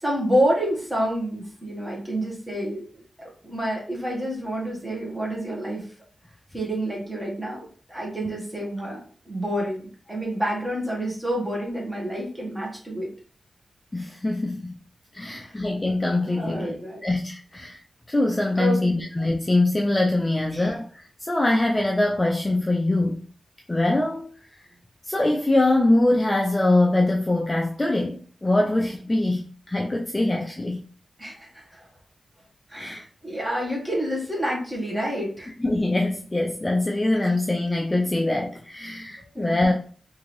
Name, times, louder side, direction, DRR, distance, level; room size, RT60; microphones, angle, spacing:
voice 1, 0.0-2.8 3.4-5.8 6.5-13.1 15.2-15.6 16.3-17.1 18.6-19.1 20.5-20.7 31.2-31.9 32.7-35.5 39.2-39.7, equal, 15° right, 1.3 m, -28 dB
voice 2, 13.9-14.7 15.1-16.8 17.0-17.8 18.1-23.2 23.7-24.3 25.1-30.8 32.7-33.0 35.6-39.7, left 2 dB, 15° left, 0.4 m, -23 dB
3.7 x 2.6 x 3.1 m
wide cardioid pair, 135°, 0 cm